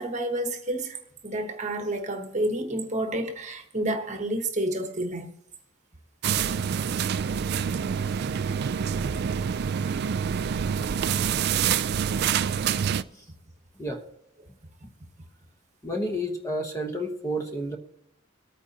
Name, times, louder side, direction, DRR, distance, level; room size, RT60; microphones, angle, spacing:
voice 1, 0.0-5.3, right 1 dB, 35° right, 1.1 m, -30 dB
sound 1, 6.2-13.0, right 7 dB, 50° right, 0.3 m, -26 dB
voice 2, 15.8-17.8, equal, 15° left, 1.1 m, -30 dB
23.0 x 9.2 x 2.8 m
head